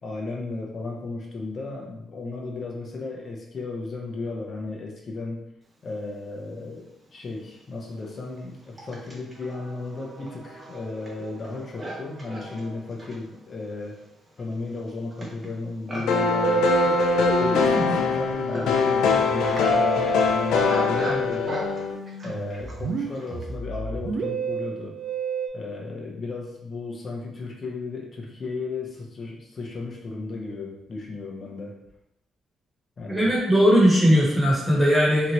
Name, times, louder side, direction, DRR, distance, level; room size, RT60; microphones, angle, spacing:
voice 1, 0.0-5.4 5.8-14.0 14.4-21.6 22.2-25.0 25.5-31.8 33.0-33.3, left 3 dB, 45° left, -1 dB, 0.8 m, -34 dB
Livestock farm animals working animals, 6.8-6.9 7.6-23.5, right 1 dB, 30° right, 0.9 m, -40 dB
sound 1, 16.1-22.0, left 5 dB, 85° left, 0.4 m, -22 dB
Musical instrument, 16.4-25.5, right 6 dB, 55° right, 0.4 m, -30 dB
voice 2, 33.1-35.3, equal, 5° left, -5 dB, 1.3 m, -19 dB
2.9 x 2.4 x 3.0 m, 0.79 s
cardioid pair, 90°, 0 cm